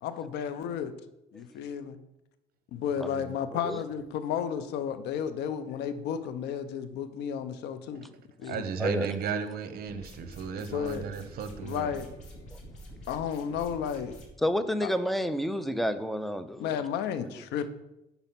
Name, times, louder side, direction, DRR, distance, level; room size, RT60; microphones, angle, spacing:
voice 1, 0.0-0.9 1.3-2.0 2.7-8.1 8.4-8.6 10.7-11.1 11.6-12.1 13.1-14.2 14.8-14.9 16.6-17.7, left 8 dB, 80° left, 0.6 m, -33 dB
voice 2, 3.0-3.3 8.5-11.9, right 6 dB, 65° right, 0.7 m, -34 dB
sound 1, 9.9-14.3, equal, 45° left, 2.2 m, -47 dB
voice 3, 14.4-16.8, equal, ahead, 0.4 m, -29 dB
5.4 x 4.1 x 5.8 m
cardioid pair, 110°, 17 cm